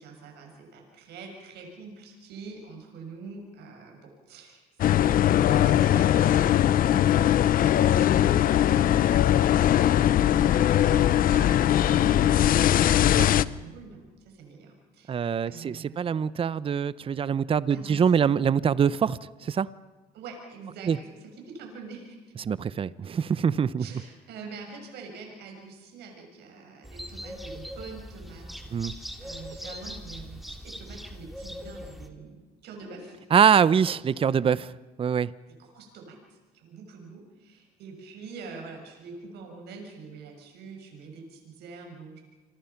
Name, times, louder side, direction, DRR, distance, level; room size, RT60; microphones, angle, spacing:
voice 1, 0.0-12.6 13.0-16.0 17.7-18.3 20.1-22.2 23.8-33.2 35.5-42.2, right 4 dB, 80° right, 2 dB, 6.5 m, -45 dB
sound 1, 4.8-13.4, left 11 dB, 55° left, 0.8 m, -20 dB
voice 2, 15.1-19.7 20.9-21.0 22.4-23.8 28.7-28.9 33.3-34.7 35.0-35.3, right 7 dB, 35° right, 18 dB, 0.7 m, -24 dB
sound 2, 26.8-32.1, equal, ahead, 2.7 m, -41 dB
27.5 x 24.5 x 5.9 m, 1.2 s
cardioid pair, 110°, 17 cm